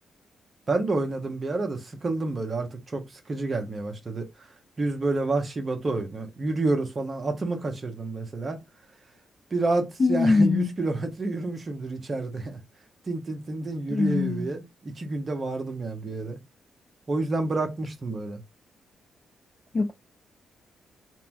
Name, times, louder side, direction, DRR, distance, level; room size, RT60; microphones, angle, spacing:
voice 1, 0.7-4.5 4.8-8.6 9.5-12.6 13.1-16.4 17.1-18.4, right 2 dB, 45° right, 0.9 m, -29 dB
voice 2, 10.0-10.7 13.9-14.5 19.7-19.9, left 3 dB, 45° left, 0.3 m, -22 dB
2.9 x 2.2 x 2.5 m
supercardioid pair, 50°, 0 cm